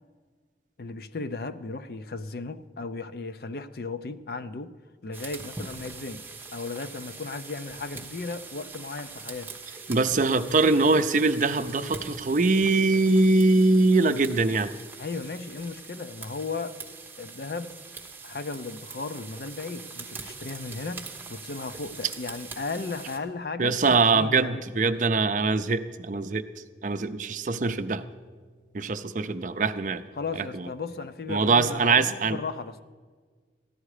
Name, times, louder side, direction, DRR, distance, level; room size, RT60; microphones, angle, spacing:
voice 1, 0.8-4.8 5.0-6.2 6.5-9.5 15.0-16.8 17.2-17.8 18.2-24.7 30.2-32.8, left 3 dB, 55° left, 11 dB, 0.5 m, -35 dB
sound 1, 5.1-23.2, right 4 dB, 10° right, 1.1 m, -43 dB
voice 2, 9.9-14.7 23.6-26.5 26.8-28.0 28.7-30.0 30.4-30.7 31.3-32.4, right 3 dB, 45° right, 9 dB, 0.5 m, -23 dB
14.5 x 11.0 x 4.9 m, 1.5 s
head